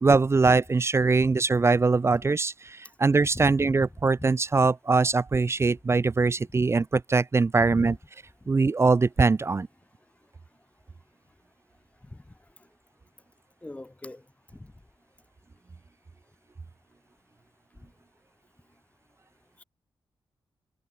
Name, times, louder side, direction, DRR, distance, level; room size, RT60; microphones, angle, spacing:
voice 1, 0.0-8.0 8.5-9.7, right 4 dB, 30° right, 0.5 m, -22 dB
voice 2, 3.3-3.7 4.2-4.3 7.7-8.0 13.6-14.2 14.5-14.7, left 2 dB, 15° left, 1.0 m, -39 dB
cardioid pair, 80°, 9 cm